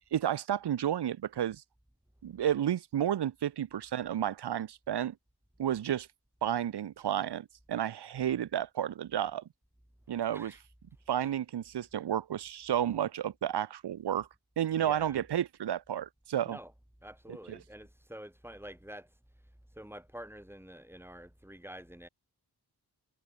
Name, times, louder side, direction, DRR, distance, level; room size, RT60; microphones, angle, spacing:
voice 1, 0.0-1.6 2.2-5.1 5.6-6.1 6.4-9.4 10.1-10.6 11.1-14.3 14.6-16.6 17.5-17.6, right 10 dB, 90° right, 0.7 m, -31 dB
voice 2, 14.7-15.2 16.5-16.7 17.0-19.1 19.8-22.1, equal, 5° right, 4.7 m, -48 dB
cardioid pair, 50°, 39 cm